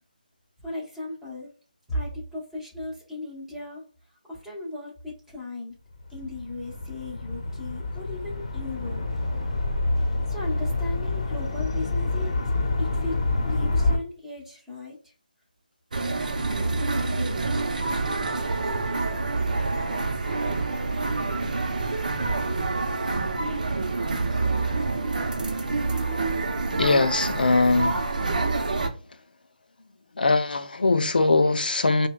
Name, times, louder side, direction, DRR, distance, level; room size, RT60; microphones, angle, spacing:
voice 1, 0.6-1.5 1.9-3.8 4.3-5.7 6.1-9.0 10.3-12.4 12.8-15.1, left 1 dB, 5° right, 1.0 m, -36 dB
sound 1, 6.0-14.0, left 2 dB, 40° left, 0.8 m, -27 dB
sound 2, 15.9-28.9, right 3 dB, 60° right, 0.7 m, -27 dB
voice 2, 26.8-28.1 30.1-32.1, left 3 dB, 80° left, 0.6 m, -21 dB
5.1 x 2.2 x 2.2 m
figure-of-eight pair, 165°, 5 cm